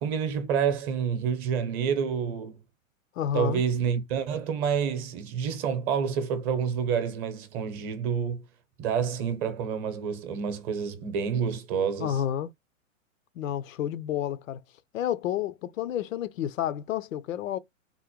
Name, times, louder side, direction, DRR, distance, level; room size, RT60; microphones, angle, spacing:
voice 1, 0.0-2.6 3.3-8.4 8.8-12.2, right 7 dB, 30° right, 0.8 m, -28 dB
voice 2, 3.2-3.6 12.0-12.5 13.4-14.6 14.9-17.6, left 10 dB, 75° left, 0.5 m, -30 dB
3.7 x 2.1 x 3.0 m
hypercardioid pair, 125°, 40 cm